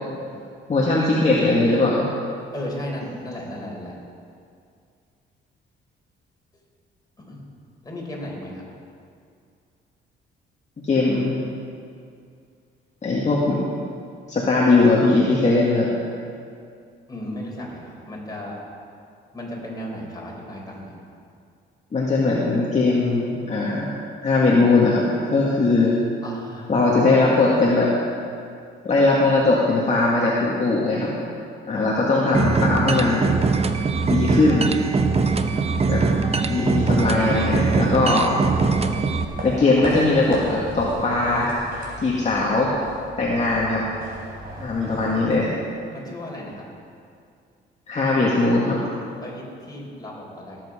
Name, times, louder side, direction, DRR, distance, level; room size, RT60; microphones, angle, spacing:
voice 1, 0.7-2.1 10.8-11.4 13.0-13.6 14.3-15.9 21.9-23.9 24.2-25.0 25.3-25.9 26.7-27.9 28.8-31.1 31.6-33.3 34.1-34.7 35.9-36.0 36.5-38.3 39.4-41.6 42.0-42.7 43.2-43.8 44.6-45.5 47.9-48.8, left 3 dB, 35° left, -4 dB, 1.9 m, -19 dB
voice 2, 2.5-3.9 7.2-7.4 7.8-8.6 17.1-18.6 19.3-21.0 26.2-26.7 31.8-31.9 35.5-35.6 43.2-43.4 44.8-45.5 45.9-46.7 49.2-50.6, left 1 dB, 20° left, -2 dB, 3.9 m, -35 dB
sound 1, 32.3-39.2, right 4 dB, 30° right, 0.8 m, -21 dB
sound 2, 36.2-45.8, equal, 50° right, 4.0 m, -36 dB
18.0 x 8.0 x 5.0 m, 2.3 s
cardioid pair, 90°, 20 cm